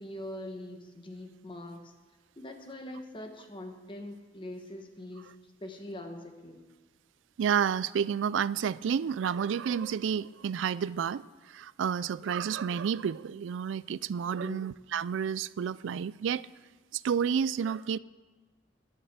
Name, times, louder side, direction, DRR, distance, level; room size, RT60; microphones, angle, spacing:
voice 1, 0.0-1.9 2.4-5.3 5.6-6.7 14.4-14.6, left 1 dB, 25° left, 1.2 m, -43 dB
voice 2, 7.4-16.4 16.9-18.0, right 7 dB, 80° right, 0.3 m, -30 dB
10.5 x 9.5 x 8.0 m
head